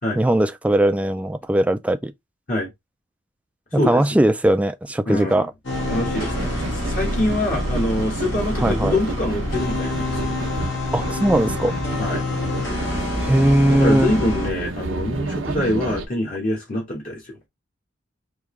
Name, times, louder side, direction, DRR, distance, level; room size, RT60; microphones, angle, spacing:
voice 1, 0.2-2.1 3.7-5.5 8.6-9.0 10.9-11.7 13.2-14.1, right 1 dB, 5° right, 0.3 m, -19 dB
voice 2, 3.7-4.0 5.1-5.5 5.9-10.4 12.0-12.2 13.7-17.4, left 1 dB, 45° left, 1.3 m, -25 dB
sound 1, 5.6-14.5, left 2 dB, 70° left, 1.6 m, -27 dB
sound 2, 5.7-16.1, right 2 dB, 85° right, 0.8 m, -30 dB
3.5 x 2.9 x 3.2 m
head